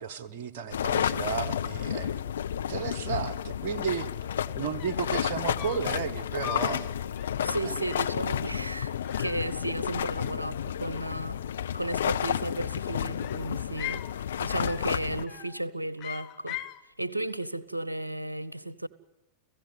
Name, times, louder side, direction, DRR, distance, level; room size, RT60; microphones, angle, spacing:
voice 1, 0.0-2.2 2.7-4.1 4.5-7.0 7.6-7.7, right 7 dB, 50° right, 1.5 m, -33 dB
sound 1, 0.7-15.2, left 9 dB, 65° left, 0.8 m, -31 dB
sound 2, 4.8-5.1 5.6-6.0 6.4-6.8 7.2-7.5 7.9-8.2 9.0-9.9 10.2-10.9 12.1-12.7 13.2-14.1 14.6-15.0 15.3-15.6 16.0-16.8, left 17 dB, 40° left, 1.1 m, -41 dB
voice 2, 7.4-11.4 11.7-14.1 14.4-18.9, right 1 dB, 85° right, 1.0 m, -34 dB
29.5 x 16.5 x 9.4 m
figure-of-eight pair, 90°, 0 cm